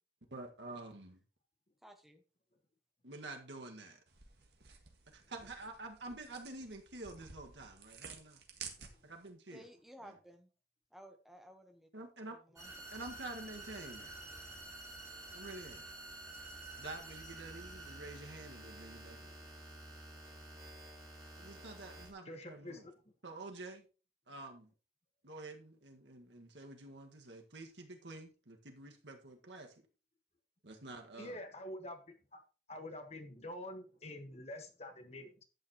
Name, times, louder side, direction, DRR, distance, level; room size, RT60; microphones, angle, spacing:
voice 1, 0.3-1.2 3.0-4.0 5.1-8.4 9.0-9.7 10.0-10.2 11.9-12.4 12.9-14.1 15.3-15.8 16.8-19.3 21.4-22.9 23.2-23.9 24.3-24.7 25.2-29.7 30.6-31.4, right 2 dB, 90° right, 1.8 m, -48 dB
voice 2, 1.8-2.2 9.5-10.5 10.9-11.9 12.3-12.7, equal, ahead, 1.2 m, -56 dB
sound 1, 4.1-9.3, right 6 dB, 70° right, 1.8 m, -53 dB
sound 2, 12.6-22.1, right 2 dB, 20° right, 4.0 m, -50 dB
voice 3, 22.2-22.9 31.1-32.0 32.3-32.4 32.7-35.4, left 1 dB, 35° left, 1.4 m, -47 dB
11.0 x 8.8 x 3.0 m
head